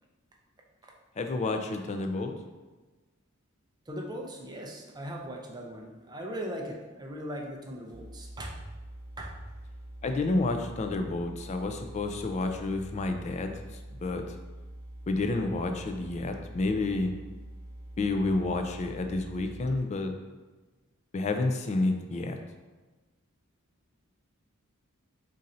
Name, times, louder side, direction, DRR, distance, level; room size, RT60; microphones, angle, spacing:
voice 1, 1.2-2.3 10.0-13.6 14.0-14.2 15.1-17.1 18.0-20.1 21.1-22.4, left 2 dB, 35° left, 5 dB, 0.3 m, -29 dB
voice 2, 3.9-8.6 9.2-9.3, equal, 20° right, 0 dB, 0.5 m, -39 dB
sound 1, 7.9-19.8, right 1 dB, 10° left, 1.2 m, -45 dB
3.9 x 2.6 x 4.2 m, 1.2 s
head